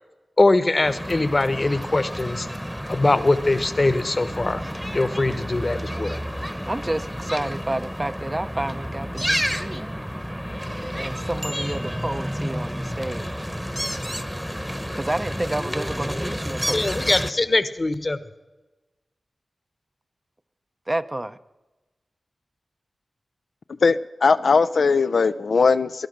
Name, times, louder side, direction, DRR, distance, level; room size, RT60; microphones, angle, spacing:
voice 1, 0.4-2.5 2.9-4.6 4.9-6.2 16.7-18.2, left 2 dB, 40° left, 13 dB, 1.1 m, -22 dB
sound 1, 0.8-17.3, equal, ahead, 1.0 m, -30 dB
voice 2, 6.7-9.9 10.9-13.3 15.0-16.9 20.9-21.4, right 1 dB, 25° right, 11 dB, 0.6 m, -30 dB
voice 3, 23.8-26.1, left 4 dB, 80° left, 11 dB, 0.4 m, -19 dB
18.5 x 11.5 x 6.6 m, 1.1 s
wide cardioid pair, 60°, 0 cm